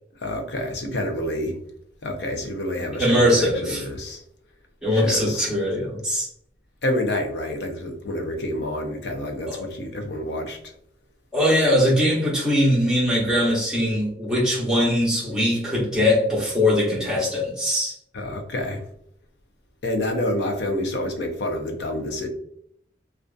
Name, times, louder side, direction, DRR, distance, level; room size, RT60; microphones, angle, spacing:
voice 1, 0.2-1.6 2.0-4.2 4.9-5.5 6.8-10.6 18.1-18.8 19.8-22.3, left 1 dB, 75° left, 0.5 m, -28 dB
voice 2, 3.0-3.9 4.8-6.3 9.5-9.7 11.3-17.9, left 1 dB, 5° right, 0.9 m, -21 dB
2.5 x 2.3 x 2.3 m
head